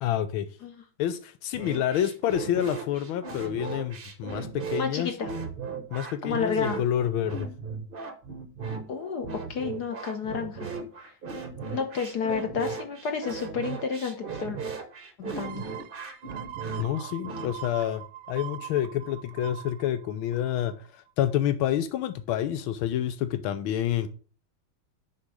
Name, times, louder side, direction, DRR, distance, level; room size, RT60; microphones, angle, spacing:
voice 1, 0.0-0.5 1.0-5.1 5.9-7.5 16.8-24.1, left 11 dB, 85° left, 1.5 m, -28 dB
sound 1, 1.5-17.5, right 5 dB, 45° right, 0.7 m, -37 dB
voice 2, 4.8-5.3 6.2-6.8 8.9-10.7 11.7-14.6 15.2-15.6, left 6 dB, 60° left, 1.4 m, -31 dB
sound 2, 15.4-20.9 21.3-21.4, right 12 dB, 70° right, 1.1 m, -42 dB
7.1 x 4.5 x 6.2 m
omnidirectional pair, 2.2 m